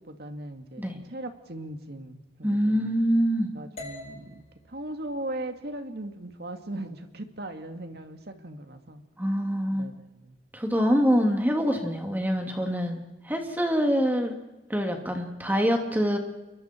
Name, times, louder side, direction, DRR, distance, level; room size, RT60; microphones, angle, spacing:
voice 1, 0.1-2.9 3.5-9.0 9.7-10.4, right 1 dB, 60° right, 6 dB, 2.2 m, -38 dB
voice 2, 2.4-3.5 9.2-9.9 10.5-14.4 14.7-16.2, equal, 10° right, 3 dB, 2.8 m, -25 dB
sound 1, 3.8-7.9, left 2 dB, 35° left, 4.0 m, -48 dB
28.5 x 23.0 x 4.6 m, 1.0 s
head